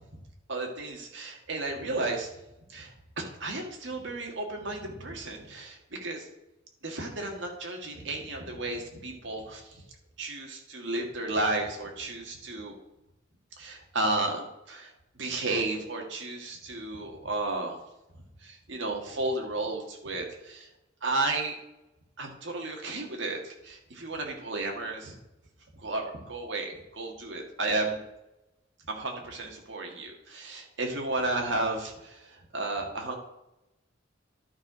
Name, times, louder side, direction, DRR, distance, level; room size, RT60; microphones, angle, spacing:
voice 1, 0.5-2.3 2.7-6.3 6.8-9.8 10.2-12.7 13.6-17.8 18.4-20.7 21.0-21.6 22.2-25.2 25.7-28.0 28.9-33.1, right 2 dB, 70° right, 1 dB, 1.8 m, -33 dB
11.0 x 4.5 x 4.9 m, 0.93 s
head